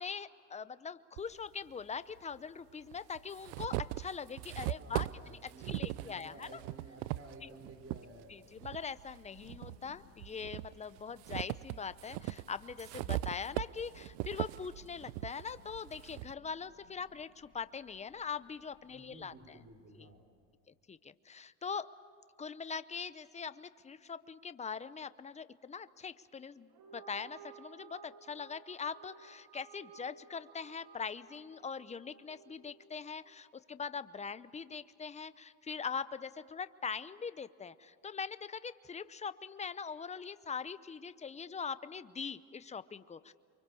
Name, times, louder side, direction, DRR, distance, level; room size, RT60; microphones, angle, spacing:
voice 1, 0.0-6.6 7.4-7.5 8.3-19.6 19.9-20.1 20.9-21.9 22.4-43.3, left 6 dB, 15° left, 14 dB, 0.7 m, -42 dB
sound 1, 1.2-1.3 2.3-2.4 2.9-8.0 8.6-9.8 10.2-16.3, right 18 dB, 90° right, 0.7 m, -39 dB
voice 2, 4.8-8.3 18.9-20.2, right 2 dB, 30° right, 5 dB, 4.6 m, -53 dB
Thunder / Rain, 6.6-20.5, left 9 dB, 65° left, 2.6 m, -65 dB
sound 2, 26.7-33.3, right 7 dB, 50° right, 2.0 m, -56 dB
29.5 x 24.0 x 7.0 m, 2.4 s
supercardioid pair, 110°, 46 cm